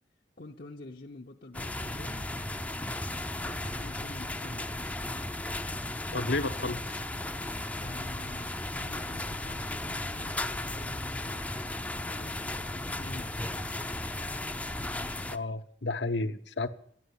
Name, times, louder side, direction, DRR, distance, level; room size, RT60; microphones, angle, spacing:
voice 1, 0.4-2.3 3.4-4.7 7.8-11.4 12.0-13.4, left 2 dB, 50° left, 0.8 m, -47 dB
sound 1, 1.5-15.4, left 1 dB, 10° left, 0.6 m, -35 dB
voice 2, 6.1-7.0 15.3-16.7, left 2 dB, 75° left, 1.0 m, -32 dB
14.0 x 9.4 x 9.9 m
head